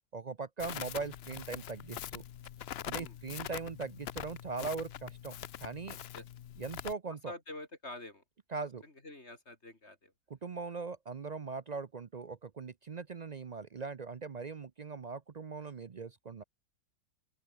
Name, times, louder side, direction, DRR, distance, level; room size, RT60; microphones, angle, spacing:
voice 1, 0.1-2.2 2.8-6.0 6.6-7.3 8.5-8.8 10.3-16.4, right 4 dB, 55° right, 0.4 m, -40 dB
Crackle, 0.6-6.9, left 11 dB, 60° left, 0.6 m, -43 dB
voice 2, 7.3-8.2 8.8-10.1, left 2 dB, 45° left, 3.8 m, -47 dB
open air
omnidirectional pair, 1.7 m